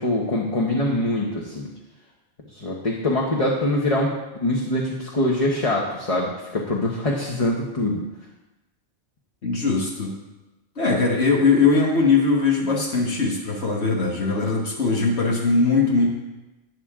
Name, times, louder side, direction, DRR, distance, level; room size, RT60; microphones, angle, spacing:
voice 1, 0.0-1.7 2.5-8.0, left 1 dB, 30° left, -2 dB, 1.2 m, -24 dB
voice 2, 9.4-10.1 10.8-16.1, left 4 dB, 70° left, -1 dB, 1.7 m, -20 dB
12.0 x 9.0 x 3.7 m, 1.1 s
omnidirectional pair, 1.2 m